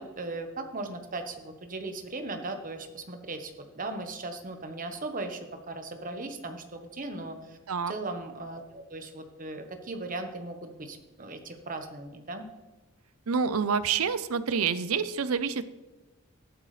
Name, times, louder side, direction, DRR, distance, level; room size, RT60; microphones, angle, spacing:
voice 1, 0.0-5.4 5.7-7.6 7.9-12.4, right 2 dB, 40° right, 6 dB, 1.2 m, -38 dB
voice 2, 13.3-15.6, right 6 dB, 85° right, 14 dB, 0.6 m, -27 dB
14.0 x 11.5 x 3.3 m, 1.1 s
head